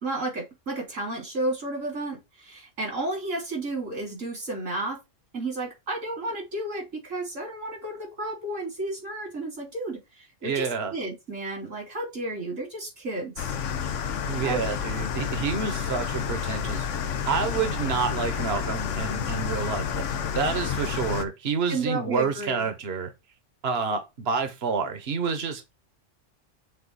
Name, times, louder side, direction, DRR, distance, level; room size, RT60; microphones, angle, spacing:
voice 1, 0.0-5.0 5.3-13.5 14.4-14.7 21.7-22.7, right 2 dB, 85° right, 3.5 m, -32 dB
voice 2, 10.4-10.9 14.3-16.9 17.3-20.0 20.3-23.1 23.6-25.8, right 5 dB, 55° right, 1.3 m, -28 dB
sound 1, 13.4-21.3, left 7 dB, 70° left, 1.1 m, -30 dB
6.9 x 3.9 x 4.0 m
omnidirectional pair, 1.3 m